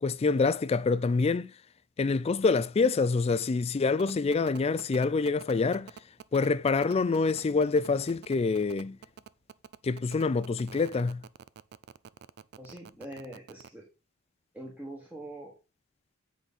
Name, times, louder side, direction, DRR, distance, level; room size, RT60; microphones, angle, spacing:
voice 1, 0.0-1.5 2.0-5.9 6.3-9.0 9.8-11.2, left 4 dB, 30° left, 0.3 m, -26 dB
sound 1, 4.0-13.7, right 7 dB, 55° right, 0.4 m, -47 dB
voice 2, 12.6-13.9 14.5-15.5, right 1 dB, 10° right, 1.4 m, -43 dB
8.1 x 5.1 x 4.1 m
head